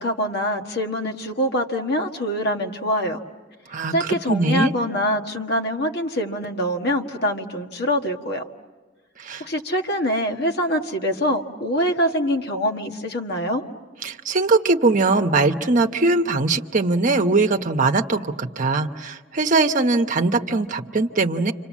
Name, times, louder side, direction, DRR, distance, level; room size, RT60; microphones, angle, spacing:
voice 1, 0.0-3.2 3.9-8.4 9.4-13.6, equal, 60° left, 4 dB, 1.6 m, -24 dB
voice 2, 3.7-4.7 9.2-9.4 14.0-21.5, right 3 dB, 45° right, 6 dB, 1.0 m, -21 dB
29.5 x 26.5 x 7.4 m, 1.3 s
head